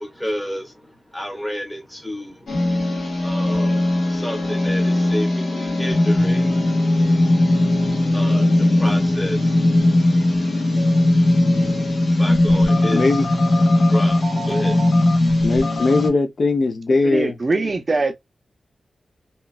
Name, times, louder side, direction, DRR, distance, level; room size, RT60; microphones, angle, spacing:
voice 1, 0.0-2.6 3.2-6.9 8.1-9.8 10.2-11.0 11.5-13.2 13.8-15.4, equal, 5° left, 0.8 m, -31 dB
sound 1, 2.5-16.1, left 1 dB, 60° left, 1.3 m, -18 dB
voice 2, 12.9-13.3 15.4-17.4, left 3 dB, 45° left, 0.5 m, -19 dB
voice 3, 17.0-18.1, right 3 dB, 30° right, 0.4 m, -22 dB
2.9 x 2.2 x 2.3 m
wide cardioid pair, 175°, 0 cm